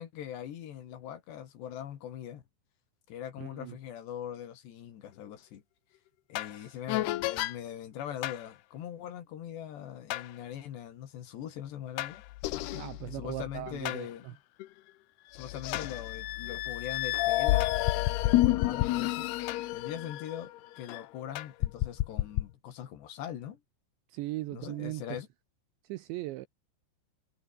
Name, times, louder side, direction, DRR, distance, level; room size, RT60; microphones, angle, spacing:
voice 1, 0.0-2.4 3.1-5.6 6.3-12.2 13.0-14.3 15.3-17.8 18.2-19.3 19.7-23.6 24.5-25.3, left 10 dB, 60° left, 3.9 m, -41 dB
voice 2, 3.4-3.7 6.5-6.8 12.7-14.3 24.1-25.0 25.8-26.5, right 18 dB, 80° right, 2.7 m, -39 dB
sound 1, 6.4-6.6 6.9-7.6 8.2-8.4 10.1-10.3 12.0-14.0 14.6-14.7 15.3-21.1 21.4-22.5, left 17 dB, 90° left, 2.3 m, -30 dB
omnidirectional pair, 5.9 m